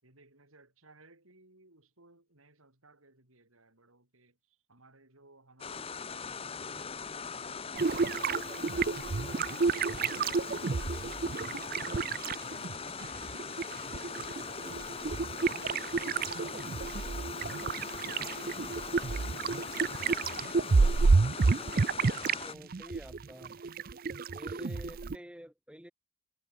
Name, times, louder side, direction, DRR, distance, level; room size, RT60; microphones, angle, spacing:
voice 1, 0.0-7.7 8.0-8.7 14.4-19.2, right 2 dB, 75° right, 5.8 m, -62 dB
sound 1, 5.6-22.5, left 5 dB, 25° left, 0.8 m, -41 dB
sound 2, 7.7-12.8 13.0-22.4 22.7-25.2, right 4 dB, 40° right, 0.5 m, -30 dB
voice 2, 22.4-23.5 24.3-25.9, equal, 5° right, 2.2 m, -49 dB
head